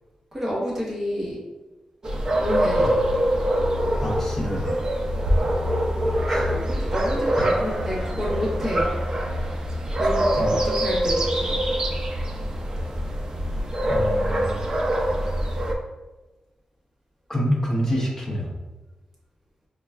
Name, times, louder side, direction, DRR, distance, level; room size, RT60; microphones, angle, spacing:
voice 1, 0.3-1.4 2.4-2.9 6.5-8.9 10.0-11.6, equal, 15° right, -7 dB, 0.9 m, -29 dB
sound 1, 2.0-15.7, equal, 35° right, 0.4 m, -24 dB
voice 2, 4.0-4.8 6.3-6.5 7.4-7.5 10.4-10.5 13.9-14.6 17.3-18.5, equal, 15° left, -3 dB, 0.8 m, -27 dB
5.2 x 2.2 x 2.3 m, 1.1 s
wide cardioid pair, 165°, 2 cm